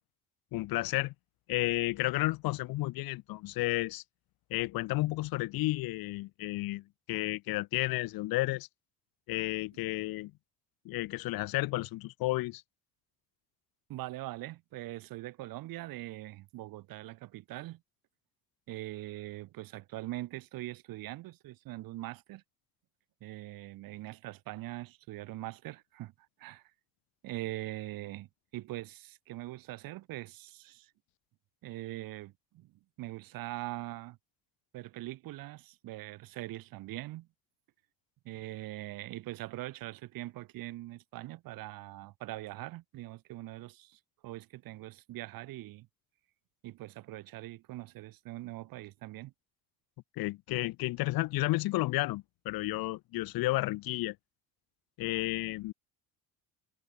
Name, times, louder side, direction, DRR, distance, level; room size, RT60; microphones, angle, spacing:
voice 1, 0.5-1.1 1.5-4.0 4.5-8.7 9.3-10.3 10.8-12.6 50.2-54.2 55.0-55.7, left 19 dB, 75° left, 1.2 m, -32 dB
voice 2, 13.9-17.8 18.7-22.4 23.2-26.1 26.4-26.6 27.2-28.3 28.5-30.9 31.6-32.7 33.0-34.2 34.7-37.3 38.3-45.9 46.6-49.3, right 17 dB, 75° right, 1.8 m, -42 dB
cardioid pair, 130°, 35 cm